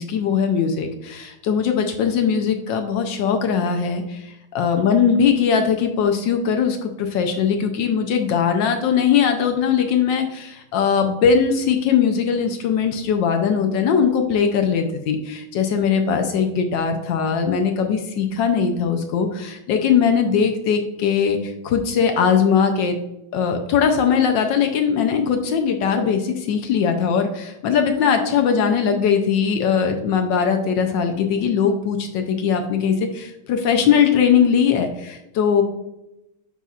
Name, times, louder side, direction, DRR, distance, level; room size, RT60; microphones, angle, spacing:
voice 1, 0.0-4.2 4.5-22.9 23.3-35.6, left 7 dB, 70° left, 5 dB, 1.2 m, -20 dB
9.4 x 4.2 x 2.4 m, 0.90 s
omnidirectional pair, 2.3 m